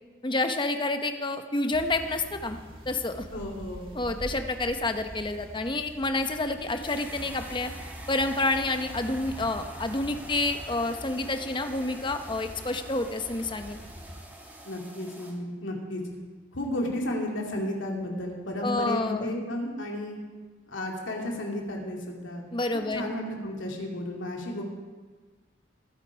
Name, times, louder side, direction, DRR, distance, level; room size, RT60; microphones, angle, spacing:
voice 1, 0.2-2.6 2.9-3.2 3.9-7.7 8.1-13.8 18.6-19.3 22.5-23.2, left 2 dB, 25° left, 7 dB, 0.8 m, -29 dB
sound 1, 1.7-14.2, equal, 30° right, 1.7 m, -44 dB
voice 2, 3.3-3.9 14.6-16.0 16.5-20.2 20.7-22.4 22.9-24.6, left 1 dB, 75° left, 0 dB, 2.6 m, -33 dB
sound 2, 6.8-15.3, right 1 dB, 10° right, 2.3 m, -46 dB
21.5 x 8.3 x 5.1 m, 1.4 s
head